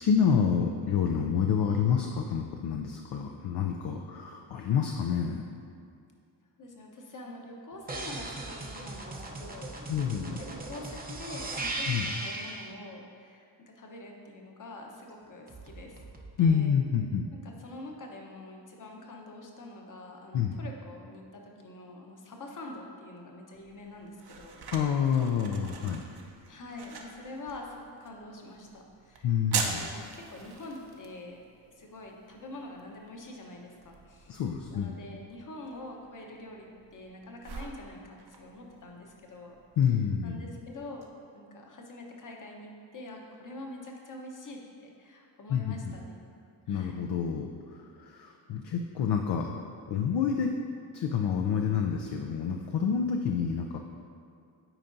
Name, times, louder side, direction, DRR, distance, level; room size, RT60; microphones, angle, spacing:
voice 1, 0.0-5.4 9.9-10.4 11.9-12.1 16.4-17.3 20.3-20.6 24.7-26.0 29.2-29.9 34.3-35.0 39.8-40.5 45.5-45.9 46.7-49.6 49.9-50.5 50.9-53.8, left 7 dB, 60° left, 3 dB, 0.5 m, -28 dB
voice 2, 6.6-9.1 9.4-9.7 10.4-13.5 13.8-16.0 16.4-16.7 17.3-24.6 26.5-31.4 31.8-34.4 34.7-39.6 40.2-46.2 46.7-47.0, left 2 dB, 40° left, 1 dB, 1.0 m, -45 dB
sound 1, 7.9-12.7 15.5-16.6, right 2 dB, 20° right, 0.7 m, -38 dB
sound 2, 23.5-41.1, right 5 dB, 55° right, 0.8 m, -43 dB
8.9 x 4.4 x 2.6 m, 2.3 s
cardioid pair, 65°, 48 cm